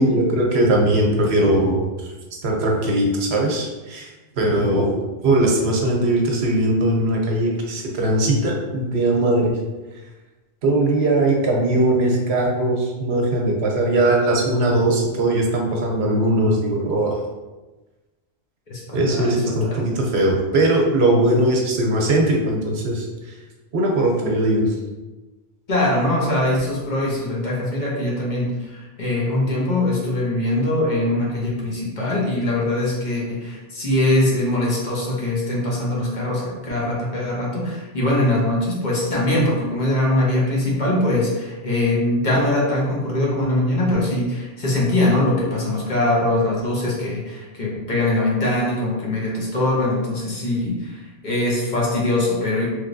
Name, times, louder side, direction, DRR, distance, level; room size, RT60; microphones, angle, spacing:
voice 1, 0.0-2.1 2.4-9.5 10.6-17.1 18.9-23.3 23.7-24.7, right 1 dB, 75° right, 0 dB, 0.9 m, -20 dB
voice 2, 19.1-19.8 25.7-52.6, left 1 dB, 45° left, -4 dB, 0.9 m, -22 dB
3.2 x 3.0 x 2.5 m, 1.2 s
omnidirectional pair, 1.1 m